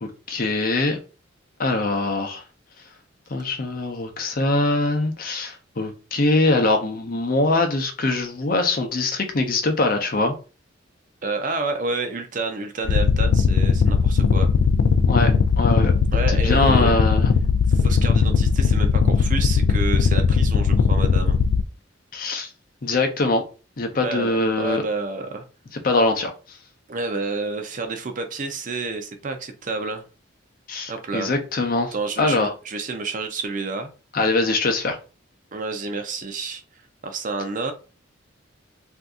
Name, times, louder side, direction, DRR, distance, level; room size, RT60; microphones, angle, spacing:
voice 1, 0.0-1.0 1.6-2.4 3.3-10.3 15.1-17.3 22.1-22.5 22.8-23.4 23.8-24.8 25.8-26.6 30.7-32.5 34.1-35.0, left 2 dB, 45° left, 5 dB, 0.6 m, -23 dB
voice 2, 11.2-14.5 16.1-17.1 17.7-21.4 24.0-25.4 26.9-30.0 30.9-31.3 31.9-33.9 35.5-36.6 37.0-37.7, right 3 dB, 40° right, 7 dB, 0.5 m, -29 dB
sound 1, 12.8-21.6, left 5 dB, 75° left, 0.3 m, -18 dB
2.7 x 2.4 x 3.5 m, 0.33 s
head